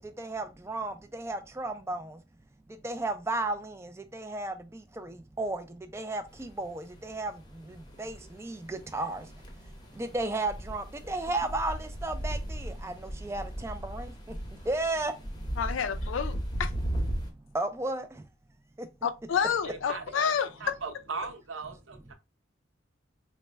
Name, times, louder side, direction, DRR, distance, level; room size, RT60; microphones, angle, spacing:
voice 1, 0.2-0.9 1.2-2.0 2.8-3.6 4.3-4.5 5.4-5.6 5.9-6.2 6.6-6.7 7.1-7.3 8.0-8.1 8.9-9.2 10.1-11.8 12.0-12.4 12.8-12.9 13.3-14.0 14.7-15.1 17.5-18.0, right 2 dB, 15° right, 0.3 m, -31 dB
sound 1, 6.3-17.3, right 1 dB, 20° left, 0.7 m, -37 dB
voice 2, 15.6-16.7 19.0-20.7, left 7 dB, 85° left, 0.4 m, -29 dB
voice 3, 19.7-22.1, right 4 dB, 85° right, 0.7 m, -39 dB
4.1 x 2.1 x 3.3 m
head